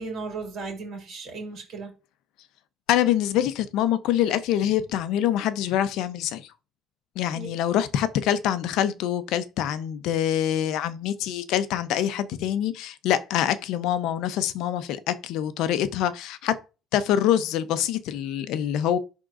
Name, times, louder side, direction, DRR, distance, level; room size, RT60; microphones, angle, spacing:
voice 1, 0.0-1.9 7.3-7.5, right 4 dB, 35° right, 2.9 m, -35 dB
voice 2, 2.9-6.5 7.2-16.5 16.9-19.0, left 11 dB, 65° left, 0.6 m, -25 dB
11.0 x 3.7 x 2.5 m
cardioid pair, 175°, 0 cm